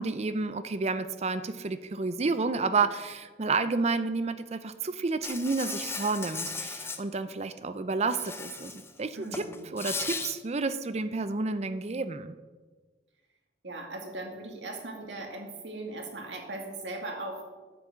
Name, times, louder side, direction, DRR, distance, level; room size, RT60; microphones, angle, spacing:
voice 1, 0.0-9.5 9.7-12.3, right 4 dB, 35° right, 12 dB, 0.5 m, -30 dB
Insect, 5.2-7.0 8.1-8.9 9.2-10.3, left 4 dB, 15° left, 0.7 m, -36 dB
voice 2, 9.1-9.7 13.6-17.5, right 2 dB, 85° right, 2 dB, 2.1 m, -39 dB
10.0 x 5.8 x 7.9 m, 1.3 s
head